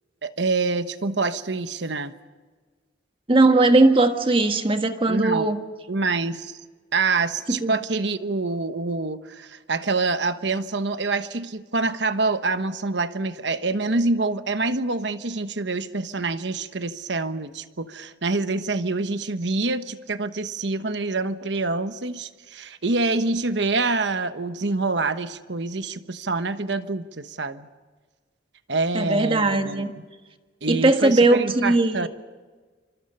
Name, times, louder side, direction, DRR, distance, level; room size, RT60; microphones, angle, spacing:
voice 1, 0.2-2.1 5.1-5.5 5.9-6.6 6.9-27.7 28.7-29.9 30.6-32.1, right 3 dB, 70° right, 10 dB, 1.1 m, -26 dB
voice 2, 3.3-5.6 7.5-7.7 28.9-29.9 30.7-32.1, right 2 dB, 30° right, 6 dB, 1.5 m, -19 dB
28.0 x 26.0 x 5.5 m, 1.4 s
head